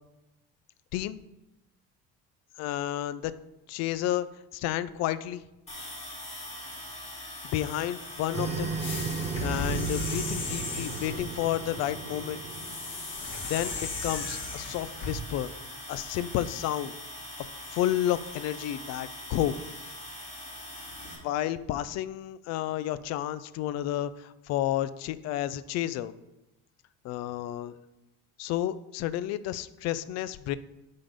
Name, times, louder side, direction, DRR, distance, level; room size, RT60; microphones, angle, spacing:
voice 1, 2.6-3.3 3.7-4.3 4.5-5.4 7.5-8.7 9.4-12.4 13.5-15.5 15.9-16.9 17.7-19.6 21.2-26.1 27.0-27.7 28.4-30.6, left 12 dB, 55° left, 15 dB, 0.5 m, -31 dB
sound 1, 5.7-21.1, left 1 dB, 20° left, 2.4 m, -42 dB
sound 2, 8.3-13.2, right 5 dB, 20° right, 0.7 m, -35 dB
sound 3, 8.8-11.2 12.5-15.1, left 3 dB, 35° left, 1.7 m, -36 dB
8.9 x 3.9 x 5.1 m, 0.95 s
cardioid pair, 150°, 31 cm